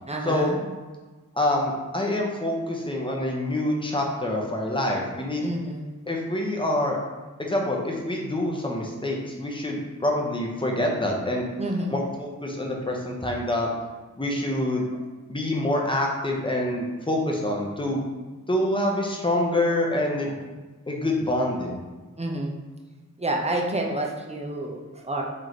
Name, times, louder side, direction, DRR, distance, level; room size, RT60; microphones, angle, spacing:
voice 1, 0.1-0.6 5.4-5.9 11.6-12.0 22.2-22.6 23.2-25.2, right 1 dB, 20° right, 0 dB, 0.6 m, -29 dB
voice 2, 1.4-5.5 6.1-7.0 7.4-11.5 11.9-13.7 14.2-15.0 15.3-18.0 18.5-20.4 20.9-21.7, left 1 dB, 15° left, -1 dB, 0.8 m, -26 dB
3.2 x 3.0 x 4.0 m, 1.3 s
wide cardioid pair, 70°, 32 cm